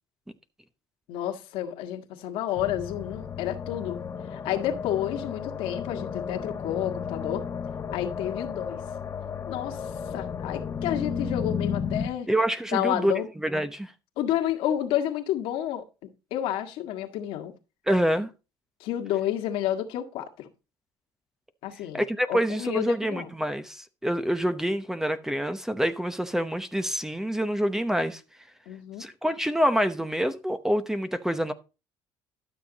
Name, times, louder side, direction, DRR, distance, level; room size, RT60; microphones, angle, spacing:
voice 1, 1.1-4.0 4.3-7.4 7.9-8.8 9.5-9.8 10.1-12.3 12.7-13.3 14.2-15.8 16.3-17.5 18.8-20.5 21.6-22.0 22.3-23.3 28.6-29.0, left 11 dB, 75° left, 1.7 m, -30 dB
sound 1, 2.6-12.1, left 6 dB, 30° left, 1.2 m, -33 dB
voice 2, 12.3-13.9 17.9-18.3 21.9-28.2 29.0-31.5, equal, 5° right, 0.8 m, -26 dB
12.5 x 6.9 x 4.0 m
cardioid pair, 110°, 9 cm